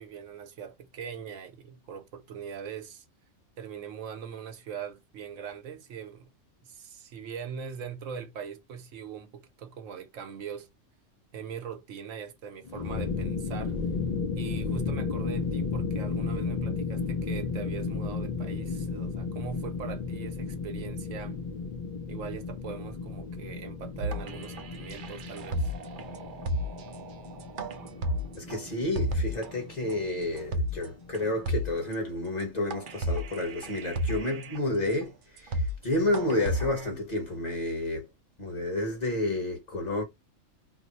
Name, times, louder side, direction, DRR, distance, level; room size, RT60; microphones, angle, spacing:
voice 1, 0.0-3.0 3.6-6.3 6.6-10.7 11.3-13.8 14.4-21.4 22.1-25.7, right 7 dB, 80° right, 1.1 m, -41 dB
sound 1, 12.6-31.5, left 4 dB, 80° left, 0.3 m, -34 dB
sound 2, 24.0-29.5 29.9-30.0 30.4-30.9 31.1-31.2 31.4-31.9 32.4-32.5 32.7-34.6 35.0-35.1 35.4-35.8 36.1-36.9, equal, 55° right, 0.6 m, -32 dB
voice 2, 28.4-38.0 38.4-40.0, left 1 dB, 35° left, 1.0 m, -30 dB
2.7 x 2.0 x 3.9 m
omnidirectional pair, 1.3 m